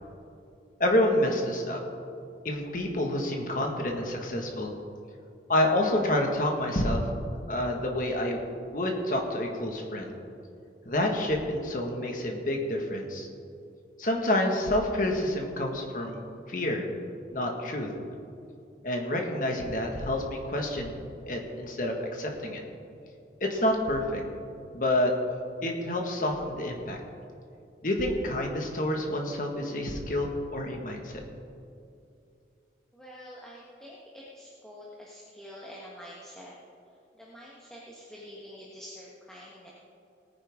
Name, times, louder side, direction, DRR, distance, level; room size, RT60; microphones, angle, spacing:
voice 1, 0.8-1.8 2.4-4.7 5.5-7.0 7.5-8.4 8.7-10.1 10.9-13.3 14.0-16.9 17.3-17.9 18.8-21.0 21.3-22.6 23.4-24.2 24.7-25.1 25.6-27.0 27.8-31.2, left 1 dB, 50° left, 1 dB, 1.7 m, -28 dB
voice 2, 32.9-36.6 37.2-39.7, equal, 5° left, -6 dB, 1.4 m, -46 dB
18.5 x 9.7 x 3.7 m, 2.5 s
head